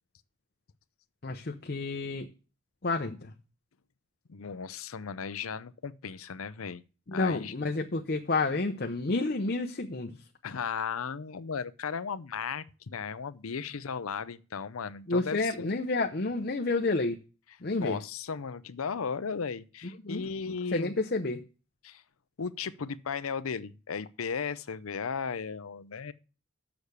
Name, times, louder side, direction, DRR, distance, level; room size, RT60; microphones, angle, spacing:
voice 1, 1.2-2.3 2.8-3.3 7.1-10.2 15.1-17.2 17.6-18.0 20.0-21.4, left 3 dB, 45° left, 0.7 m, -30 dB
voice 2, 4.3-6.8 7.1-7.5 10.4-15.7 17.8-20.9 21.8-22.0 22.4-26.1, left 6 dB, 90° left, 0.6 m, -36 dB
7.1 x 6.5 x 6.6 m
head